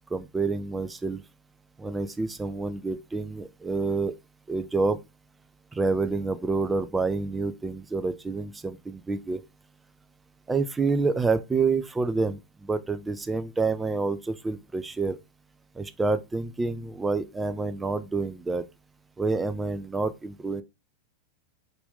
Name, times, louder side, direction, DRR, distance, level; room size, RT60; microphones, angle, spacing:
voice 1, 0.1-1.2 1.8-4.1 4.5-5.0 5.7-9.4 10.5-15.2 15.8-18.6 19.2-20.6, right 3 dB, 10° right, 0.4 m, -28 dB
4.2 x 2.6 x 3.7 m
figure-of-eight pair, 90°, 0 cm